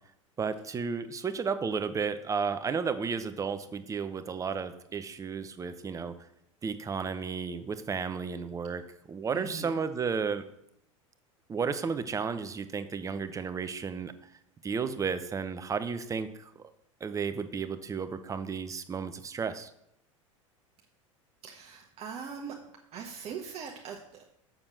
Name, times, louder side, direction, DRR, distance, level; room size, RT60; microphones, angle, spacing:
voice 1, 0.4-6.1 6.6-8.8 9.1-10.4 11.5-14.1 14.6-16.5 17.0-19.7, right 5 dB, 20° right, 11 dB, 0.8 m, -33 dB
voice 2, 9.3-9.8 21.4-22.5 22.9-24.2, right 6 dB, 35° right, 1 dB, 1.2 m, -41 dB
7.1 x 6.7 x 6.0 m, 0.77 s
figure-of-eight pair, 80°, 17 cm